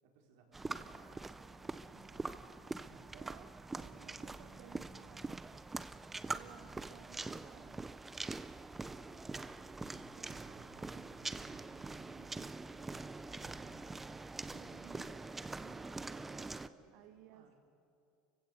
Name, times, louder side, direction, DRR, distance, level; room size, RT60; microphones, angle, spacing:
voice 1, 0.0-3.2 3.8-5.3 6.5-7.2 8.7-11.3 16.3-17.5, right 3 dB, 70° right, 1 dB, 4.3 m, -65 dB
sound 1, 0.5-16.7, right 3 dB, 10° right, 0.5 m, -44 dB
voice 2, 3.1-5.6 6.3-7.8 10.2-12.6 14.5-15.2 16.9-17.5, right 11 dB, 50° right, 7 dB, 0.9 m, -59 dB
29.0 x 16.0 x 8.2 m, 2.6 s
cardioid pair, 165°, 2 cm